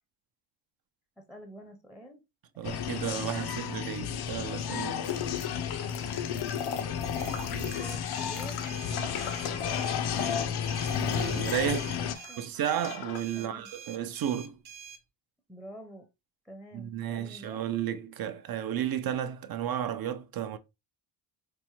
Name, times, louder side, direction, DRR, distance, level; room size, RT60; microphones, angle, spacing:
voice 1, 1.2-2.2 2.6-3.8 5.9-6.1 7.5-9.8 10.1-10.5 11.6-12.5 13.4-13.7 15.5-16.1 16.4-17.7, right 1 dB, ahead, 0.6 m, -48 dB
sound 1, 2.6-12.1, left 8 dB, 55° left, 0.5 m, -33 dB
voice 2, 2.6-5.1 10.9-11.8 12.4-14.6 16.7-20.6, right 10 dB, 50° right, 0.5 m, -33 dB
sound 2, 5.0-12.3 12.6-13.2, left 7 dB, 90° left, 0.7 m, -37 dB
sound 3, 7.2-15.0, right 7 dB, 75° right, 0.9 m, -47 dB
4.5 x 2.1 x 3.0 m
cardioid pair, 105°, 48 cm